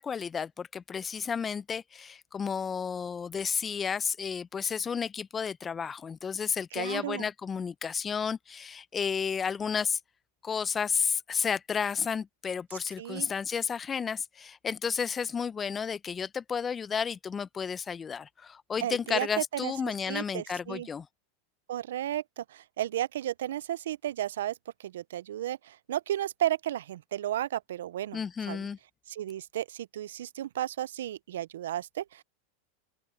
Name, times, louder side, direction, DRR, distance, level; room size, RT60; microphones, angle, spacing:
voice 1, 0.0-10.0 10.4-21.1 28.1-28.8, left 6 dB, 25° left, 0.7 m, -32 dB
voice 2, 6.8-7.3 13.0-13.3 18.8-20.9 21.7-24.5 24.8-28.7 29.1-32.2, right 12 dB, 80° right, 0.5 m, -33 dB
open air
hypercardioid pair, 105°, 0 cm